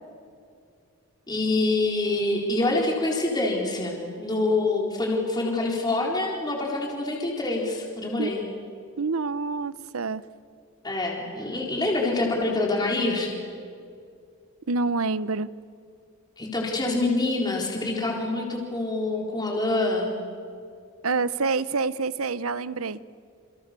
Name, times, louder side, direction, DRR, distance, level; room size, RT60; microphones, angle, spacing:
voice 1, 1.3-8.4 10.8-13.3 16.4-20.1, left 2 dB, 20° left, -1 dB, 4.2 m, -26 dB
voice 2, 9.0-10.2 14.7-15.5 21.0-23.0, right 4 dB, 80° right, 16 dB, 0.9 m, -27 dB
29.0 x 28.5 x 6.9 m, 2.4 s
head